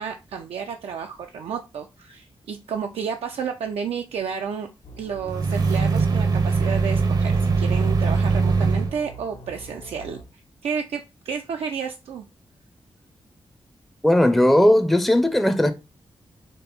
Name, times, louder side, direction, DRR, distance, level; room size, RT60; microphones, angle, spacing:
voice 1, 0.0-4.7 5.0-12.3, right 6 dB, 90° right, 0.4 m, -31 dB
sound 1, 4.8-10.2, right 1 dB, 70° left, 0.9 m, -43 dB
sound 2, 5.3-8.9, right 4 dB, 45° right, 0.6 m, -21 dB
voice 2, 14.0-15.7, left 1 dB, ahead, 0.4 m, -17 dB
5.2 x 2.0 x 4.3 m
wide cardioid pair, 95°, 10 cm